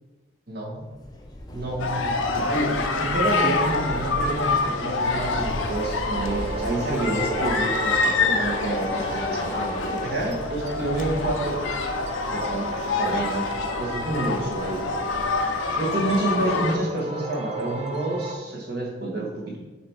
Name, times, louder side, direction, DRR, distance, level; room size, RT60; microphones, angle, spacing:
voice 1, 0.5-0.8 1.5-11.5 12.3-13.5 13.8-14.8 15.8-19.6, right 2 dB, 50° right, -3 dB, 1.5 m, -28 dB
Train / Subway metro underground, 0.8-15.7, left 1 dB, 20° left, 0.6 m, -37 dB
sound 1, 1.8-16.8, left 3 dB, 80° left, 0.6 m, -27 dB
sound 2, 5.2-18.4, equal, 35° right, 0.4 m, -35 dB
7.3 x 2.9 x 4.6 m, 1.2 s
head